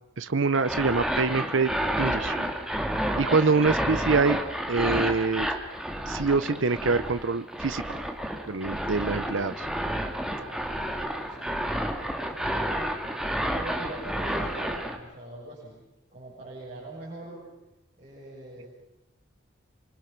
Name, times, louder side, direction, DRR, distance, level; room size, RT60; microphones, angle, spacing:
voice 1, 0.2-1.7 2.0-2.5 3.2-4.4 4.7-5.5 6.1-7.8 8.5-9.7, right 4 dB, 75° right, 11 dB, 0.8 m, -25 dB
sound 1, 0.5-15.0, equal, 5° right, 2.0 m, -30 dB
voice 2, 10.2-12.8 13.5-15.8 16.1-17.5 18.0-18.7, right 1 dB, 35° right, -7 dB, 7.5 m, -42 dB
26.0 x 25.5 x 6.0 m, 0.98 s
head